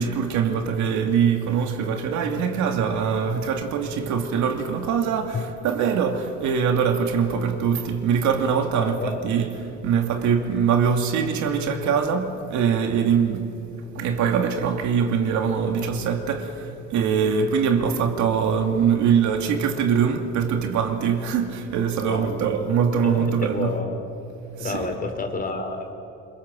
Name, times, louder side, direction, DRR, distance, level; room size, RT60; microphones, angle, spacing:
voice 1, 0.0-13.5 13.9-23.8 24.6-24.9, right 7 dB, 70° right, 2.6 m, -23 dB
voice 2, 8.7-9.3 22.0-22.5 23.0-24.0 24.6-25.9, left 3 dB, 30° left, 4.0 m, -30 dB
26.5 x 23.0 x 7.7 m
cardioid pair, 115°, 30 cm